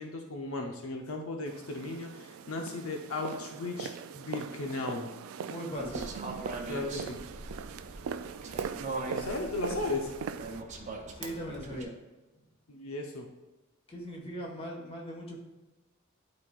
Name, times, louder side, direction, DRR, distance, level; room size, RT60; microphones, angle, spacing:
voice 1, 0.0-5.1 6.7-7.2 9.1-10.1 12.7-13.3, left 2 dB, 80° left, 2 dB, 0.8 m, -36 dB
sound 1, 1.5-10.6, right 7 dB, 70° right, 0.3 m, -40 dB
voice 2, 5.5-6.1 11.2-11.9 13.9-15.4, equal, 30° left, -1 dB, 1.5 m, -39 dB
sound 2, 5.8-11.8, right 2 dB, 35° right, 0.8 m, -41 dB
11.5 x 4.2 x 2.4 m, 1.1 s
head